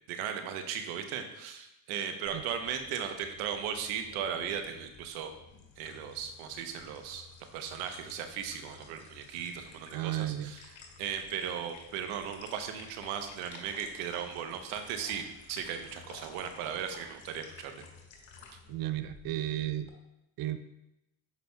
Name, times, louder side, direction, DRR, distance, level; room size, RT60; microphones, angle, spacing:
voice 1, 0.1-5.3 5.8-7.3 7.5-10.7 11.0-17.8, right 8 dB, 85° right, 7 dB, 0.9 m, -37 dB
sound 1, 2.3-19.9, left 4 dB, 65° left, 1.7 m, -54 dB
voice 2, 9.9-10.5 18.7-19.9 20.4-20.6, right 13 dB, 50° right, 11 dB, 0.5 m, -33 dB
8.2 x 6.2 x 2.2 m, 0.88 s
supercardioid pair, 60°, 49 cm